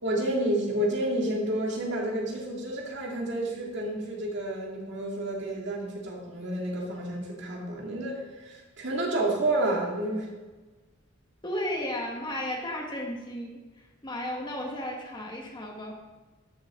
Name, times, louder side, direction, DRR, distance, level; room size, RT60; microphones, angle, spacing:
voice 1, 0.0-10.3, right 1 dB, 60° right, -1 dB, 2.2 m, -30 dB
voice 2, 11.4-13.6 14.0-15.9, left 1 dB, 25° left, 0 dB, 1.6 m, -34 dB
13.0 x 7.1 x 3.7 m, 1.2 s
head